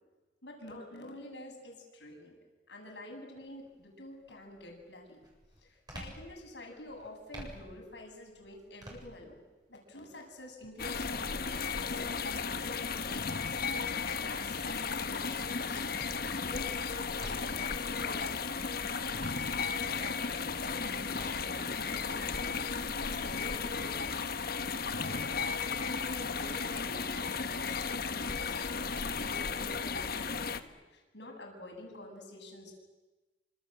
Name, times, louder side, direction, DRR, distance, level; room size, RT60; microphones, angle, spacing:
voice 1, 0.4-2.4 2.7-5.2 5.6-9.4 9.7-11.4 11.8-13.6 14.1-18.6 19.4-22.6 22.9-24.3 24.7-32.7, left 1 dB, 80° left, 2 dB, 7.6 m, -48 dB
sound 1, 3.3-3.7 4.2-17.8 18.2-20.0 20.5-23.1, right 1 dB, 25° right, 7.5 m, -53 dB
sound 2, 10.8-30.6, left 5 dB, 60° left, 1.3 m, -34 dB
28.0 x 26.0 x 7.7 m, 1.2 s
head